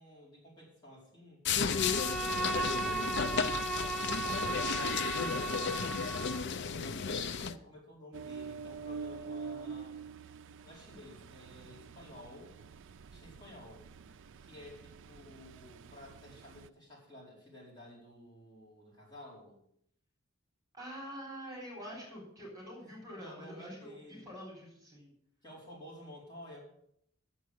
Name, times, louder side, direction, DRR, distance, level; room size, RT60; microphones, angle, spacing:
voice 1, 0.0-1.4 2.1-6.1 6.7-10.0 10.6-12.5 13.1-13.9 14.4-19.6 23.1-24.3 25.4-26.6, left 1 dB, 20° left, -5 dB, 4.7 m, -53 dB
sound 1, 1.4-7.5, left 6 dB, 55° left, 0.5 m, -33 dB
Bowed string instrument, 1.7-6.5, right 3 dB, 5° left, 0.9 m, -36 dB
Ocean, 8.1-16.7, right 5 dB, 60° right, 0.5 m, -46 dB
voice 2, 20.7-25.1, equal, 20° right, -2 dB, 3.7 m, -46 dB
9.3 x 7.3 x 7.8 m, 0.72 s
head